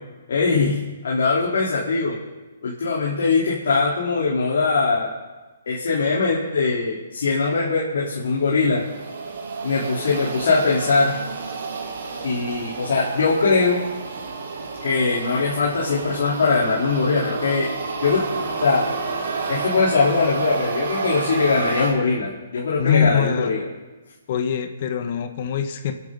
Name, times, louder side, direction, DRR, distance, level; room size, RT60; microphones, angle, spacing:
voice 1, 0.3-0.8 1.0-2.2 2.6-5.1 5.7-8.8 9.6-11.1 12.2-13.8 14.8-17.7 18.0-18.2 18.6-18.8 19.5-23.7, left 4 dB, 70° left, -5 dB, 3.6 m, -21 dB
sound 1, 8.4-21.9, right 4 dB, 65° right, 4.4 m, -30 dB
voice 2, 22.8-23.5 24.3-25.9, left 7 dB, 50° left, 8 dB, 1.3 m, -23 dB
26.0 x 11.0 x 4.0 m, 1.2 s
hypercardioid pair, 135°, 0 cm